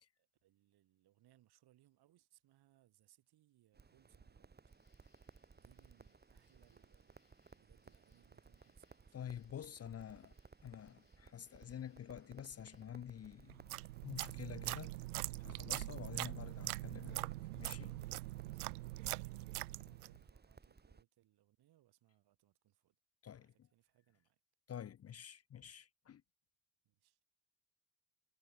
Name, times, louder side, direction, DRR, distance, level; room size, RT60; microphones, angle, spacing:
voice 1, 0.2-4.5 5.6-9.3 9.6-10.4 18.1-23.0 23.3-24.4 26.8-27.2, right 14 dB, 55° right, 6.3 m, -72 dB
Crackle, 3.7-21.0, right 4 dB, 20° right, 2.3 m, -62 dB
sound 1, 4.6-12.9, left 4 dB, 85° left, 7.5 m, -81 dB
voice 2, 9.1-10.3 10.6-13.6 14.0-14.9 15.4-18.0 23.2-23.5 24.7-26.2, left 9 dB, 30° left, 0.9 m, -49 dB
sound 2, 13.5-20.2, right 19 dB, 75° right, 0.6 m, -43 dB
figure-of-eight pair, 50°, 45 cm